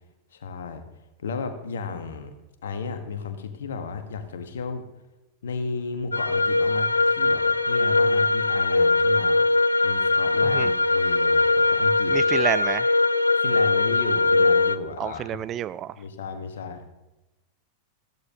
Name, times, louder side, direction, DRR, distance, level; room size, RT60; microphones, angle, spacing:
voice 1, 0.3-0.8 1.2-2.3 2.6-4.8 5.4-9.4 9.8-12.2 13.4-15.4 16.0-16.9, left 4 dB, 65° left, 8 dB, 1.3 m, -33 dB
sound 1, 6.1-14.8, left 3 dB, 80° left, 0.3 m, -21 dB
voice 2, 12.1-12.9 15.0-15.9, right 11 dB, 30° right, 18 dB, 0.3 m, -28 dB
14.0 x 13.0 x 2.9 m, 1.0 s
figure-of-eight pair, 90°, 0 cm